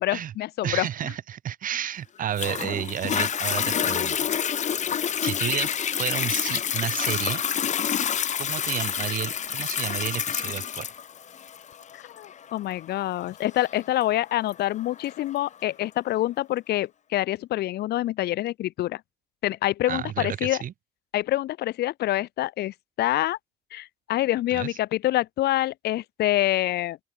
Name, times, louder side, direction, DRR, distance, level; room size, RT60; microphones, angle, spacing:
voice 1, 0.0-1.1 11.9-19.0 19.4-20.6 21.1-23.4 23.7-27.0, left 15 dB, 75° left, 4.4 m, -26 dB
voice 2, 0.6-4.3 5.2-7.4 8.4-10.9 19.9-20.7 24.5-24.8, right 10 dB, 55° right, 2.9 m, -31 dB
Toilet flush, 2.4-15.4 16.0-16.1, left 8 dB, 45° left, 2.3 m, -28 dB
open air
cardioid pair, 110°, 17 cm